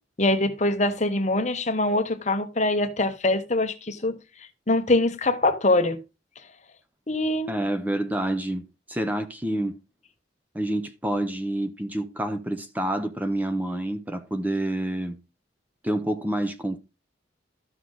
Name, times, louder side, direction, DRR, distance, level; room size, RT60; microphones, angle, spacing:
voice 1, 0.2-4.2 4.7-6.0 7.1-7.5, left 2 dB, 35° left, 1.0 m, -23 dB
voice 2, 7.5-9.8 10.5-15.2 15.8-16.8, right 1 dB, 10° right, 0.7 m, -28 dB
13.5 x 6.3 x 3.9 m
head